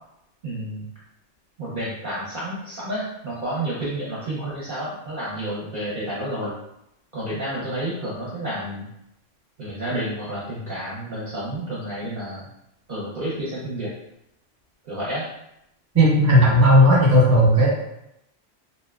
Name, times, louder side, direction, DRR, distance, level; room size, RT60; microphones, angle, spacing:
voice 1, 0.4-0.9 1.6-6.5 7.1-8.9 9.6-12.5 12.9-13.9 14.8-15.3, right 1 dB, 55° right, -7 dB, 0.7 m, -30 dB
voice 2, 15.9-17.7, equal, 15° right, -7 dB, 0.8 m, -15 dB
2.6 x 2.1 x 2.2 m, 0.82 s
omnidirectional pair, 1.2 m